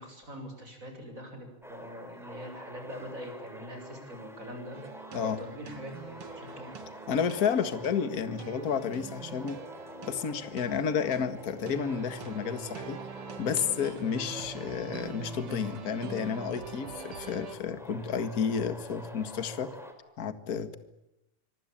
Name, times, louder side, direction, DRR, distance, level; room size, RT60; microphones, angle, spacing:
voice 1, 0.0-4.8 5.2-6.9 7.6-7.7 8.3-8.7 14.3-14.4, equal, 25° right, 5 dB, 6.7 m, -43 dB
sound 1, 1.6-19.9, equal, ahead, 4.1 m, -48 dB
sound 2, 4.7-17.6, right 6 dB, 50° right, 2.5 m, -44 dB
voice 2, 7.1-9.6 10.0-13.0 13.4-19.7 20.2-20.8, left 7 dB, 35° left, 11 dB, 1.7 m, -31 dB
26.0 x 24.0 x 8.8 m, 0.91 s
omnidirectional pair, 3.5 m